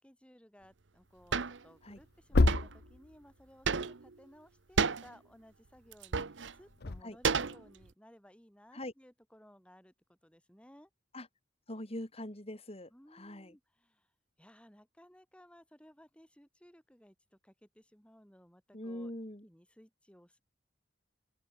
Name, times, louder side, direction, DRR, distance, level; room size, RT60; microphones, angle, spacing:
voice 1, 0.0-10.9 12.9-14.1 14.4-19.1 19.4-20.4, equal, 5° left, 7.0 m, -60 dB
sound 1, 1.3-1.6 2.5-2.7 3.6-4.1 4.8-5.1 5.9-6.5 7.2-7.9, right 5 dB, 85° right, 0.9 m, -31 dB
sound 2, 1.9-2.0 2.3-3.4 6.4-7.0, left 2 dB, 60° left, 0.8 m, -28 dB
voice 2, 11.7-13.6 18.7-19.4, left 1 dB, 35° left, 4.6 m, -43 dB
open air
head